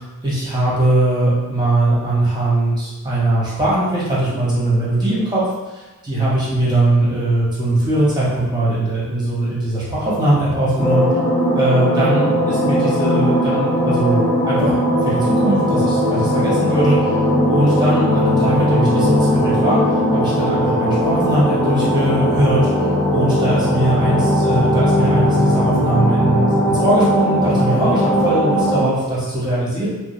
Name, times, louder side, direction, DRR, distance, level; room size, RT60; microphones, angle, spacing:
voice 1, 0.2-5.4 5.7-11.1 11.5-14.7 15.0-29.9, right 1 dB, 15° right, -8 dB, 1.1 m, -20 dB
sound 1, 10.8-28.8, equal, 10° left, 0.7 m, -18 dB
2.3 x 2.1 x 3.1 m, 1.1 s
wide cardioid pair, 125°, 33 cm